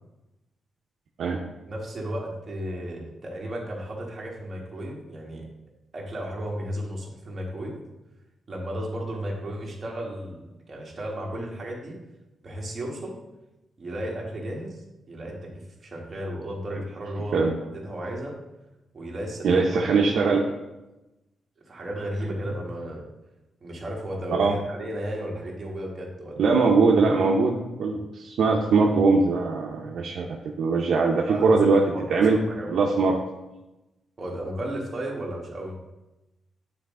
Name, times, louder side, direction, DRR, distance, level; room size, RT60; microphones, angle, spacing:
voice 1, 1.7-5.4 5.9-7.8 8.5-12.0 12.4-13.2 13.8-18.4 18.9-19.7 20.2-20.5 21.7-23.1 23.6-26.6 31.3-31.6 31.9-32.7 34.2-35.8, right 1 dB, 25° right, -2 dB, 1.4 m, -34 dB
voice 2, 19.4-20.4 24.3-24.6 26.4-30.3 30.6-31.8 32.1-32.4 32.7-33.2, right 4 dB, 65° right, 0 dB, 0.6 m, -21 dB
9.0 x 4.0 x 3.6 m, 0.99 s
wide cardioid pair, 165°, 0 cm